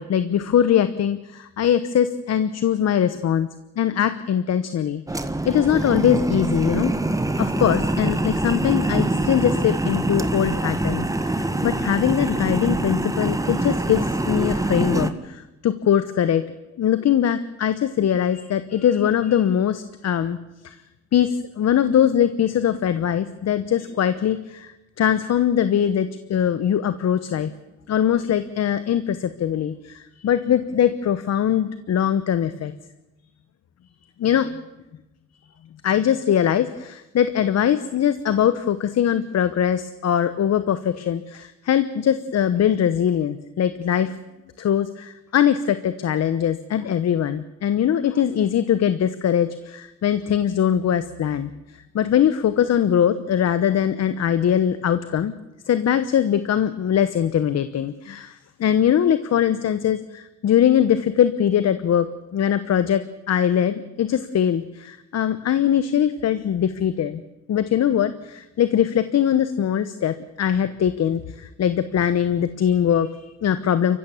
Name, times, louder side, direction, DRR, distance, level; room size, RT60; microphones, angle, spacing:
voice 1, 0.0-3.5 3.8-6.9 7.4-16.4 16.8-20.4 20.6-20.8 21.1-27.5 27.9-32.7 34.2-34.5 35.8-44.2 44.6-51.5 51.9-55.3 55.7-62.1 62.3-67.2 67.5-74.0, left 9 dB, 60° left, 12 dB, 1.1 m, -21 dB
sound 1, 5.1-15.1, right 2 dB, 10° right, 1.5 m, -24 dB
28.5 x 15.5 x 7.3 m, 1.0 s
cardioid pair, 90°, 30 cm